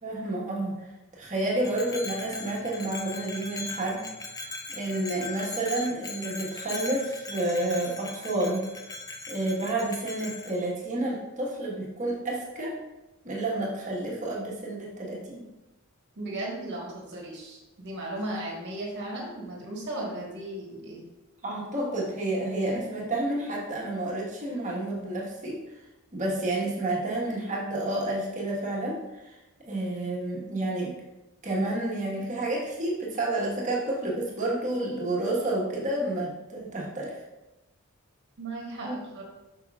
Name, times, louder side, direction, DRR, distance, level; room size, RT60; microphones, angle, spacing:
voice 1, 0.0-0.7 1.2-4.0 4.3-8.7 9.3-12.8 13.2-15.4 21.4-25.6 26.1-29.3 29.7-30.9 31.4-37.2 38.8-38.9, right 1 dB, 35° right, -4 dB, 1.5 m, -30 dB
Bell, 1.6-10.6, left 3 dB, 15° left, 0.5 m, -39 dB
voice 2, 16.2-21.0 38.4-39.2, right 1 dB, 55° right, -2 dB, 1.5 m, -36 dB
7.7 x 6.0 x 2.5 m, 1.0 s
head